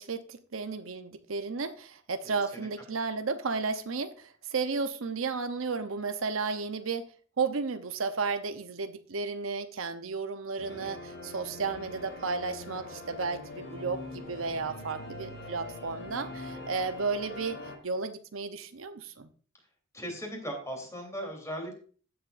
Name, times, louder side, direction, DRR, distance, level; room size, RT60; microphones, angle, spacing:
voice 1, 0.0-7.1 7.4-17.6 17.8-19.3, right 4 dB, 85° right, 0.8 m, -33 dB
voice 2, 2.2-2.7 10.6-11.0 19.9-21.8, equal, 15° left, 3.4 m, -39 dB
sound 1, 10.6-17.8, left 2 dB, 60° left, 5.4 m, -43 dB
15.0 x 7.7 x 2.6 m
head